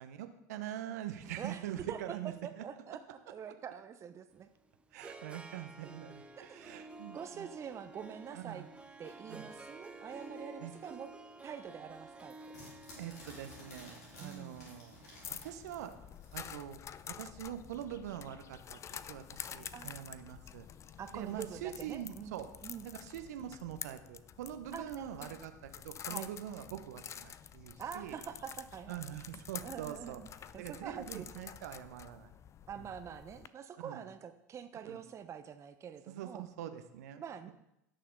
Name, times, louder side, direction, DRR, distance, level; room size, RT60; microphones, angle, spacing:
voice 1, 0.0-2.6 4.9-7.5 8.3-8.7 9.3-9.5 10.6-10.7 13.0-15.0 15.3-16.0 16.3-16.8 17.0-20.7 21.1-22.5 22.8-28.2 28.9-32.3 32.8-32.9 33.8-34.0 34.9-35.0 36.1-37.5, right 11 dB, 70° right, 8 dB, 1.0 m, -44 dB
voice 2, 1.4-2.2 2.4-3.0 3.3-4.5 6.3-6.6 7.1-8.6 9.0-11.1 11.4-12.3 14.2-14.7 19.7-19.9 21.0-22.3 22.6-22.9 24.7-25.3 26.1-26.6 27.8-29.2 29.6-30.3 30.5-31.5 32.7-36.4 37.2-37.5, right 8 dB, 30° right, 8 dB, 0.8 m, -45 dB
Harp, 4.3-16.5, right 2 dB, 10° right, 1.0 m, -52 dB
sound 1, 9.0-11.1 11.4-16.4, left 2 dB, 70° left, 4.0 m, -54 dB
sound 2, 15.2-33.5, left 9 dB, 35° left, 0.5 m, -49 dB
16.5 x 6.6 x 3.9 m, 0.83 s
hypercardioid pair, 75°, 9 cm